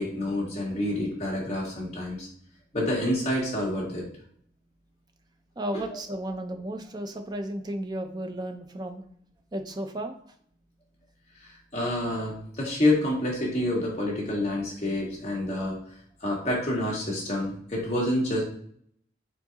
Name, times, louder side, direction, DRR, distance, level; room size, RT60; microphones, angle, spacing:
voice 1, 0.0-2.3 2.7-4.1 5.7-5.9 11.4-15.8 16.2-18.4, left 1 dB, 35° left, -4 dB, 1.6 m, -28 dB
voice 2, 5.6-9.0 9.5-10.1, right 1 dB, 25° right, 6 dB, 0.5 m, -33 dB
4.4 x 3.8 x 2.9 m, 0.63 s
head